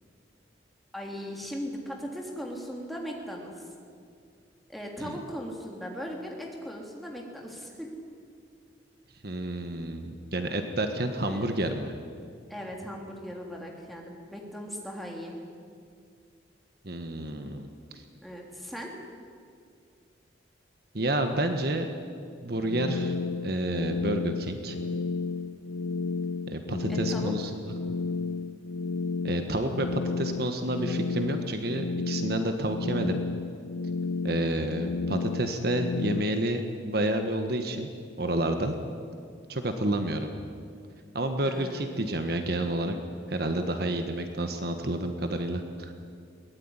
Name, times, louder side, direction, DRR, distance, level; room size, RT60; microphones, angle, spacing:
voice 1, 0.9-3.7 4.7-7.9 11.2-11.5 12.5-15.4 18.2-19.0 26.9-27.3 41.4-42.0, equal, ahead, -1 dB, 3.2 m, -38 dB
voice 2, 9.2-11.9 16.8-17.7 17.9-18.0 20.9-21.9 22.4-23.2 23.4-24.8 26.5-27.6 29.2-33.2 34.2-37.9 38.2-38.8 39.5-40.3 41.1-43.0 43.3-45.9, right 1 dB, 55° right, 6 dB, 1.5 m, -29 dB
sound 1, 22.6-36.2, left 4 dB, 85° left, 0.5 m, -32 dB
22.0 x 18.0 x 9.9 m, 2.3 s
head